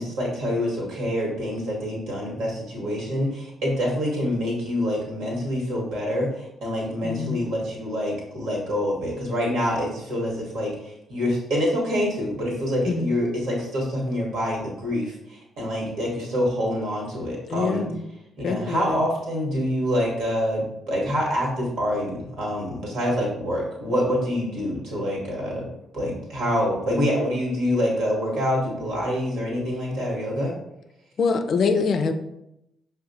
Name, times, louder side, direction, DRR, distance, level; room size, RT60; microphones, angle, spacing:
voice 1, 0.0-17.8 18.4-25.7 25.9-30.5, equal, 70° right, -3 dB, 1.3 m, -26 dB
voice 2, 7.0-7.4 12.9-13.1 17.5-18.0 18.4-19.0 31.2-32.1, left 4 dB, 55° left, 7 dB, 0.4 m, -24 dB
5.8 x 2.2 x 2.6 m, 0.86 s
hypercardioid pair, 40°, 0 cm